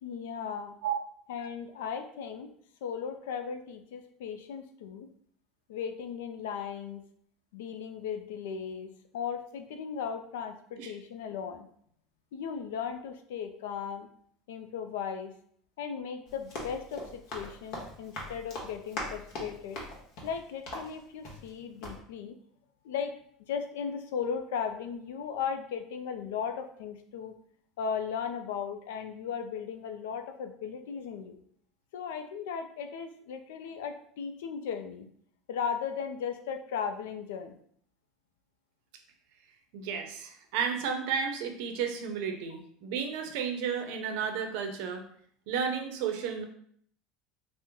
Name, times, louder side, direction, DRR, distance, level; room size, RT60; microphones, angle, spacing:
voice 1, 0.0-0.7 1.3-2.5 2.8-5.1 5.7-7.0 7.5-11.7 12.3-14.1 14.5-15.3 15.8-19.8 20.2-22.4 22.8-23.1 23.5-27.4 27.8-31.4 31.9-35.1 35.5-37.6, left 7 dB, 90° left, 7 dB, 0.3 m, -36 dB
Run, 16.3-21.6 21.8-22.0, left 1 dB, 60° left, 1.0 m, -41 dB
voice 2, 39.7-45.0 45.5-46.4, right 6 dB, 75° right, 5 dB, 0.5 m, -32 dB
2.9 x 2.0 x 3.5 m, 0.62 s
supercardioid pair, 115°, 0 cm